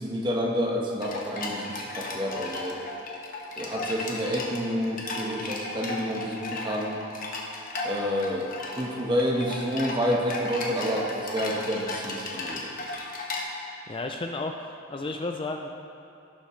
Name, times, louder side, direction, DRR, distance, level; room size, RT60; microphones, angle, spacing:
voice 1, 0.0-2.8 3.6-7.0 7.8-8.5 8.7-12.6, equal, 25° right, -1 dB, 1.2 m, -29 dB
sound 1, 1.0-13.4, left 2 dB, 45° left, 1.3 m, -35 dB
voice 2, 13.9-15.7, left 2 dB, 25° left, 3 dB, 0.4 m, -33 dB
17.5 x 7.1 x 3.2 m, 2.9 s
head